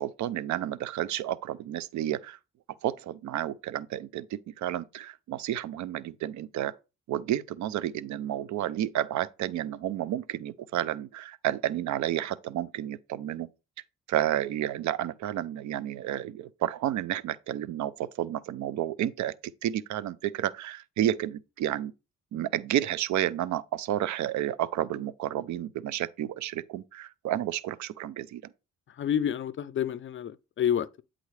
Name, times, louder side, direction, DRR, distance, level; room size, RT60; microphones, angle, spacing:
voice 1, 0.0-2.4 2.8-6.7 7.1-13.5 14.1-21.9 22.3-28.5, right 12 dB, 70° right, 0.5 m, -31 dB
voice 2, 29.0-31.0, left 9 dB, 40° left, 0.4 m, -29 dB
9.2 x 3.8 x 3.2 m
cardioid pair, 90°, 30 cm